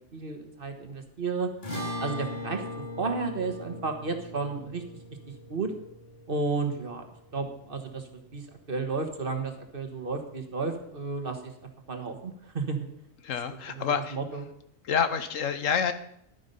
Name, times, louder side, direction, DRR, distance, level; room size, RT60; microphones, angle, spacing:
voice 1, 0.1-1.5 2.0-2.6 3.0-4.8 5.5-5.7 6.3-7.1 7.3-11.5 11.9-12.9 13.7-14.5, right 4 dB, 45° right, 6 dB, 1.6 m, -32 dB
sound 1, 1.6-8.1, left 1 dB, 50° left, 4.0 m, -39 dB
voice 2, 13.2-14.2 14.8-15.9, left 7 dB, 85° left, 10 dB, 1.3 m, -27 dB
11.0 x 9.6 x 5.4 m, 0.74 s
omnidirectional pair, 1.3 m